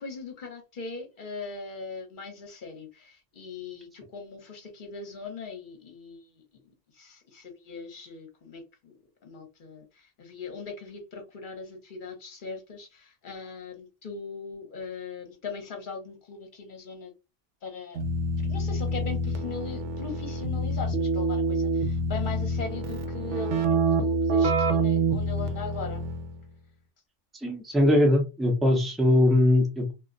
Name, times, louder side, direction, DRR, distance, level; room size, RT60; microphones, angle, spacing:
voice 1, 0.0-6.4 6.9-9.0 9.2-17.1 17.6-18.0 18.4-26.0, left 4 dB, 45° left, 3 dB, 1.0 m, -40 dB
Keyboard (musical), 18.0-26.4, right 2 dB, 75° right, 0.9 m, -27 dB
voice 2, 27.3-29.9, left 1 dB, ahead, 1 dB, 0.5 m, -21 dB
2.4 x 2.2 x 3.7 m, 0.27 s
omnidirectional pair, 1.3 m